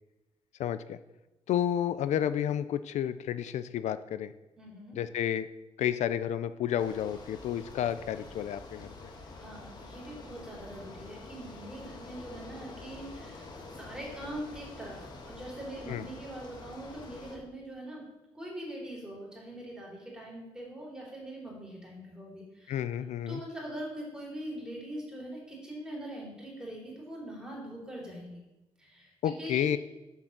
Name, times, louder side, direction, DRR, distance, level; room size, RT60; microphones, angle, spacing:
voice 1, 0.6-1.0 1.5-4.3 4.9-5.5 5.8-8.9 15.9-16.0 22.7-23.4 29.2-29.8, left 10 dB, 80° left, 13 dB, 0.4 m, -31 dB
voice 2, 4.6-5.0 9.1-18.0 18.3-22.9 23.3-28.4 28.8-29.8, right 1 dB, 5° right, -4 dB, 3.4 m, -42 dB
Bicycle, 6.8-17.4, left 3 dB, 40° left, 1.5 m, -47 dB
7.4 x 7.2 x 6.6 m, 1.0 s
wide cardioid pair, 165°, 12 cm